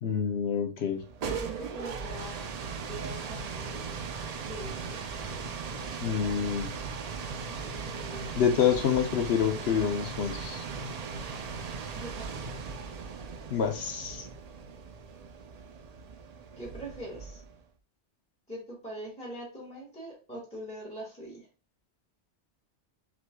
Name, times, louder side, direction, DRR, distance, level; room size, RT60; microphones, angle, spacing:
voice 1, 0.0-1.0 6.0-6.7 8.4-10.6 13.5-14.3, left 7 dB, 70° left, 1.0 m, -27 dB
sound 1, 0.9-17.6, right 5 dB, 50° right, 0.5 m, -38 dB
voice 2, 1.2-2.5 2.9-4.1 4.5-6.0 7.5-8.3 11.9-12.3 16.6-17.4 18.5-21.5, right 1 dB, 5° left, 1.6 m, -43 dB
6.1 x 3.1 x 2.2 m
omnidirectional pair, 1.1 m